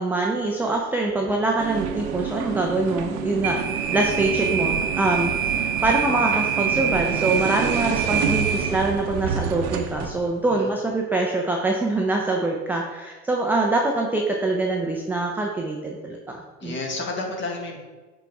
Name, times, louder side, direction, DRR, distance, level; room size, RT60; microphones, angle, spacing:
voice 1, 0.0-16.7, right 2 dB, 5° right, -1 dB, 0.5 m, -24 dB
sound 1, 1.6-10.2, right 7 dB, 45° right, 0.8 m, -25 dB
voice 2, 16.6-17.8, left 2 dB, 30° left, 1 dB, 1.7 m, -31 dB
8.1 x 4.1 x 3.5 m, 1.3 s
hypercardioid pair, 100°, 41 cm